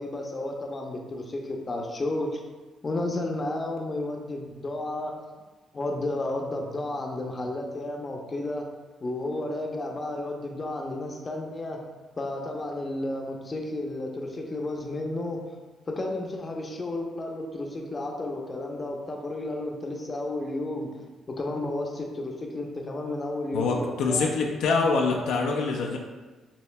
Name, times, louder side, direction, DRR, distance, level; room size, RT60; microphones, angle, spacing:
voice 1, 0.0-2.4 2.8-5.2 5.7-8.7 9.0-11.8 12.2-15.4 15.9-20.9 21.3-24.3 24.6-24.8, left 2 dB, 30° left, 1 dB, 0.7 m, -32 dB
voice 2, 23.5-26.0, left 4 dB, 85° left, 1 dB, 0.5 m, -25 dB
7.0 x 2.7 x 2.2 m, 1.2 s
cardioid pair, 90°, 0 cm